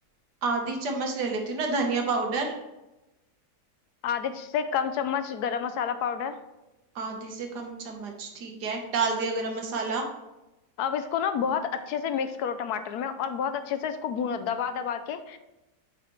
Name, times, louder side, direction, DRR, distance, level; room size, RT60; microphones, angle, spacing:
voice 1, 0.4-2.5 7.0-10.1, right 3 dB, 85° right, 2 dB, 1.7 m, -29 dB
voice 2, 4.0-6.4 10.8-15.4, left 7 dB, 80° left, 10 dB, 1.1 m, -29 dB
8.8 x 4.9 x 3.1 m, 0.99 s
omnidirectional pair, 1.7 m